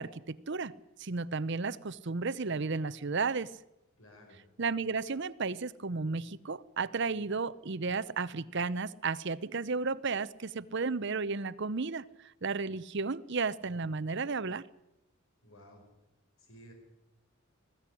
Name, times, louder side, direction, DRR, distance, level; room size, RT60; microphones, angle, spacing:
voice 1, 0.0-3.5 4.6-12.1 12.4-14.6, right 4 dB, 55° right, 0.7 m, -33 dB
voice 2, 4.0-4.4 15.4-15.8 16.4-16.7, equal, 80° left, 5.3 m, -54 dB
20.5 x 15.5 x 10.0 m
head